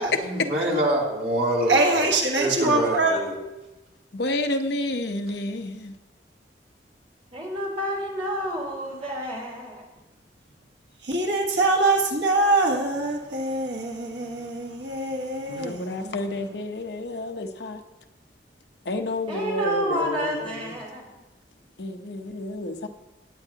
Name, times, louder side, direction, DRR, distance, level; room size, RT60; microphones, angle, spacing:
voice 1, 0.0-2.1 2.4-3.3, right 1 dB, 60° right, -4 dB, 3.1 m, -25 dB
voice 2, 1.7-3.2 11.0-16.6, right 2 dB, 85° right, 0 dB, 1.6 m, -24 dB
voice 3, 4.1-5.9 15.5-17.8 18.9-20.4 20.6-20.7 21.8-22.9, left 2 dB, 70° left, 6 dB, 1.0 m, -30 dB
voice 4, 7.3-9.8 19.3-21.1, right 1 dB, 35° right, -4 dB, 3.7 m, -29 dB
19.0 x 9.1 x 2.9 m, 1.0 s
head